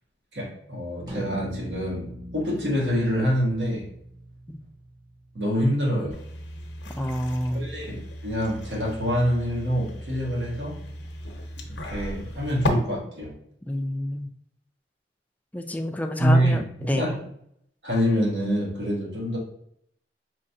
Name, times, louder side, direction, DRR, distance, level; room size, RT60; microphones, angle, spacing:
voice 1, 0.3-3.9 5.3-6.2 7.5-10.8 11.8-13.3 16.2-17.1 17.8-19.4, equal, 80° right, -3 dB, 1.5 m, -26 dB
sound 1, 1.1-5.6, equal, 20° right, 0.9 m, -40 dB
sound 2, 6.1-12.7, left 1 dB, 90° left, 0.7 m, -35 dB
voice 2, 7.0-7.7 13.7-14.3 15.5-17.1, left 1 dB, 10° left, 5 dB, 0.3 m, -28 dB
5.2 x 3.2 x 2.7 m, 0.69 s
head